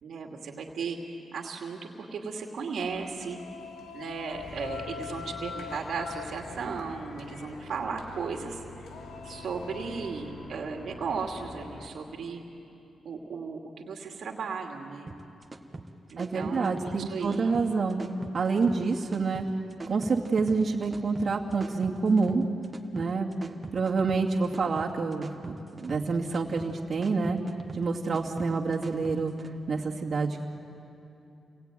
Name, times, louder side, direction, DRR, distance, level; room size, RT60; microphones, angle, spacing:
voice 1, 0.0-1.0 1.3-3.4 3.9-8.9 9.2-12.4 13.0-15.1 16.1-17.5, right 5 dB, 70° right, 2 dB, 2.5 m, -36 dB
sound 1, 2.8-10.1, left 6 dB, 90° left, 1.8 m, -44 dB
sound 2, 4.3-11.9, left 2 dB, 70° left, 3.9 m, -46 dB
sound 3, 15.1-29.5, right 2 dB, 25° right, 1.7 m, -43 dB
voice 2, 16.2-18.0 18.3-19.5 19.9-22.5 22.9-23.3 23.7-27.4 27.7-29.3 29.7-30.6, right 4 dB, 50° right, -3 dB, 2.5 m, -27 dB
29.5 x 21.5 x 9.3 m, 2.8 s
cardioid pair, 85°, 0 cm